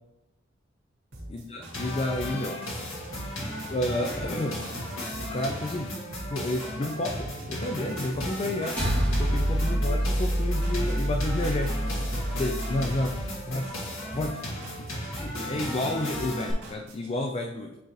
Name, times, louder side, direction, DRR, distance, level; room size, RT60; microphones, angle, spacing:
sound 1, 1.1-17.1, right 1 dB, 75° right, 1.9 m, -43 dB
voice 1, 1.3-2.6 3.7-4.6 5.3-5.9 6.3-8.8 9.2-11.9 12.3-13.2 13.5-13.7 14.1-14.4 14.8-17.8, left 1 dB, 30° left, 3 dB, 0.3 m, -31 dB
sound 2, 1.7-16.5, left 1 dB, 85° left, 1.8 m, -36 dB
sound 3, 8.8-13.3, right 1 dB, 5° left, 2.0 m, -27 dB
9.0 x 3.8 x 3.1 m, 0.95 s
head